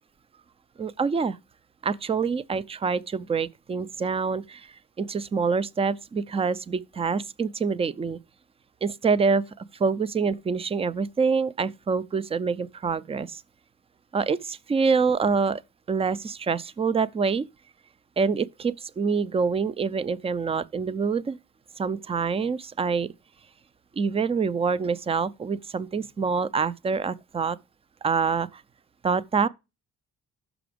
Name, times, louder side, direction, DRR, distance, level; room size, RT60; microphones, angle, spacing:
voice 1, 0.8-1.4 1.8-4.7 5.0-8.2 8.8-13.4 14.1-15.6 15.9-17.4 18.2-21.4 21.8-23.1 24.0-27.6 28.0-28.6 29.0-29.5, right 5 dB, 20° right, 0.4 m, -26 dB
6.0 x 5.9 x 5.0 m
cardioid pair, 90°, 30 cm